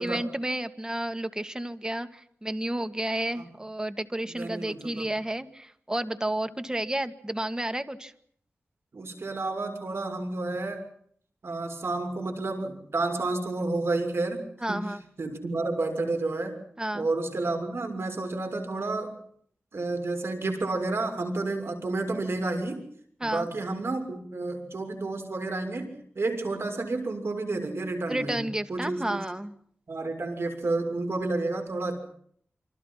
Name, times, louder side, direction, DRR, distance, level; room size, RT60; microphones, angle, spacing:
voice 1, 0.0-8.1 14.6-15.0 16.8-17.1 23.2-23.5 28.1-29.5, right 1 dB, 15° right, 10 dB, 2.1 m, -31 dB
voice 2, 4.3-5.1 8.9-10.8 11.4-14.8 15.2-16.6 16.9-19.1 19.7-22.8 23.2-28.4 28.7-29.2 29.9-32.0, right 2 dB, 65° right, 6 dB, 6.7 m, -30 dB
28.0 x 26.5 x 5.9 m, 0.64 s
wide cardioid pair, 95°, 5 cm